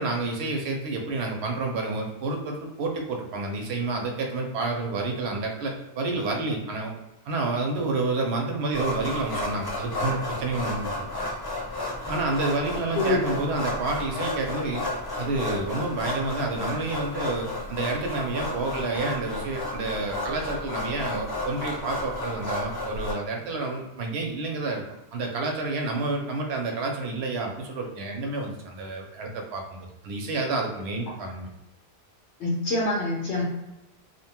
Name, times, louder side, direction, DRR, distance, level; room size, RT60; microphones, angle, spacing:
voice 1, 0.0-6.9 7.3-11.1 12.1-14.9 15.1-24.8 25.1-31.5, right 3 dB, 80° right, 2 dB, 0.8 m, -29 dB
sound 1, 8.7-23.1, left 2 dB, 35° left, 0.4 m, -32 dB
voice 2, 32.4-33.4, left 2 dB, 90° left, -5 dB, 1.0 m, -25 dB
2.7 x 2.2 x 2.8 m, 0.99 s
omnidirectional pair, 1.1 m